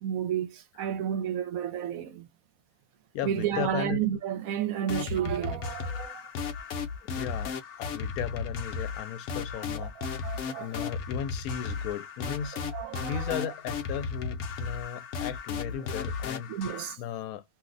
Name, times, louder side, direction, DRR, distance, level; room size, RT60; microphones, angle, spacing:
voice 1, 0.0-2.3 3.2-6.2 9.8-10.9 12.7-13.4 15.7-15.8 16.5-17.0, right 9 dB, 75° right, 1.0 m, -32 dB
voice 2, 3.1-4.1 7.1-9.9 10.6-12.6 13.0-16.5 17.0-17.4, left 9 dB, 85° left, 1.1 m, -36 dB
sound 1, 4.9-17.0, left 5 dB, 65° left, 0.8 m, -35 dB
2.6 x 2.1 x 3.7 m
omnidirectional pair, 1.5 m